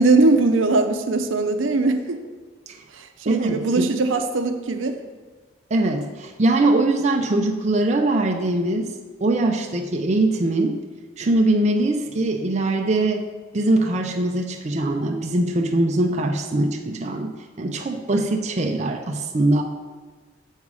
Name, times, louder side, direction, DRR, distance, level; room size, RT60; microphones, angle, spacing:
voice 1, 0.0-2.2 3.0-5.0, right 3 dB, 75° right, 7 dB, 0.6 m, -20 dB
voice 2, 3.3-3.9 5.7-8.9 9.2-10.8 11.2-13.2 13.5-17.3 17.6-19.6, right 2 dB, 35° right, 3 dB, 0.5 m, -22 dB
7.2 x 5.4 x 4.7 m, 1.4 s
head